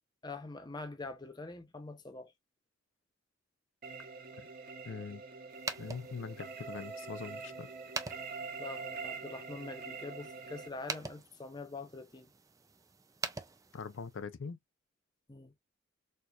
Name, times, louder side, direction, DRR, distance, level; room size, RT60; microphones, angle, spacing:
voice 1, 0.2-2.3 8.6-12.3 15.3-15.5, left 3 dB, 20° left, 0.7 m, -44 dB
sound 1, 3.8-10.7, right 4 dB, 45° right, 0.9 m, -45 dB
voice 2, 4.9-5.2 5.8-7.7 13.7-14.6, left 5 dB, 70° left, 0.5 m, -42 dB
sound 2, 5.5-14.2, right 4 dB, 15° right, 0.4 m, -45 dB
4.4 x 2.4 x 2.3 m
head